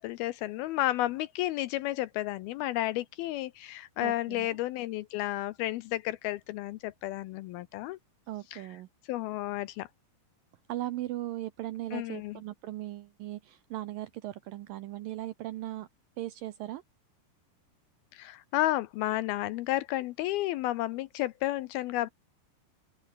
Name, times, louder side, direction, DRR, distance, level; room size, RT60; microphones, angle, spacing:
voice 1, 0.0-8.0 8.5-8.6 9.1-9.9 11.9-12.4 18.1-22.1, left 16 dB, 80° left, 2.3 m, -32 dB
voice 2, 4.0-4.5 8.3-8.9 10.7-15.9 16.2-16.8, right 15 dB, 75° right, 2.1 m, -38 dB
open air
omnidirectional pair, 4.9 m